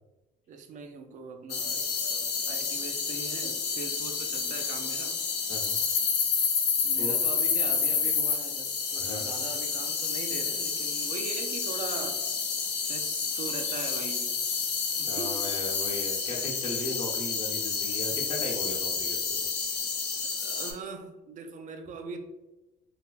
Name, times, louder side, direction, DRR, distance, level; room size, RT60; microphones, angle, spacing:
voice 1, 0.5-5.2 6.8-12.2 12.7-14.4 15.0-15.4 20.4-22.2, right 4 dB, 50° right, 6 dB, 0.5 m, -41 dB
sound 1, 1.5-20.7, left 5 dB, 85° left, 0.8 m, -29 dB
voice 2, 5.5-5.8 7.0-7.2 8.9-9.3 15.0-19.5, left 1 dB, 35° left, 0 dB, 0.7 m, -37 dB
3.3 x 3.2 x 2.3 m, 1.1 s
cardioid pair, 110°, 17 cm